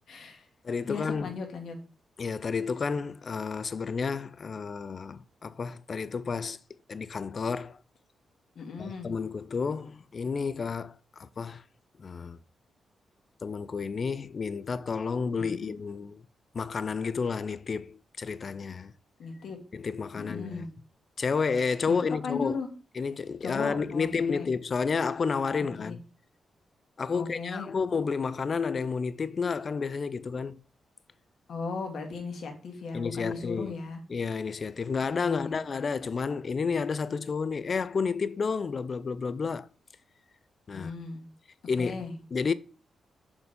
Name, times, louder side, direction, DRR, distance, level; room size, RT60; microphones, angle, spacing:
voice 1, 0.1-0.5 0.9-1.8 8.6-9.1 15.4-15.7 19.2-19.6 20.2-20.7 21.9-22.0 22.2-22.7 23.4-24.5 25.8-26.0 27.1-27.7 28.0-28.1 31.5-34.0 35.2-35.6 40.7-41.2 41.8-42.1, left 4 dB, 65° left, 1.9 m, -37 dB
voice 2, 0.6-1.3 2.2-6.6 6.9-7.8 8.8-10.9 11.2-11.6 12.0-12.4 13.4-16.2 16.5-18.9 19.7-20.7 21.2-22.6 23.0-26.0 27.0-30.6 32.9-33.7 34.1-39.7 40.7-40.9 41.7-42.0 42.3-42.5, left 5 dB, 40° left, 0.4 m, -31 dB
6.7 x 4.2 x 5.3 m
wide cardioid pair, 145°, 0 cm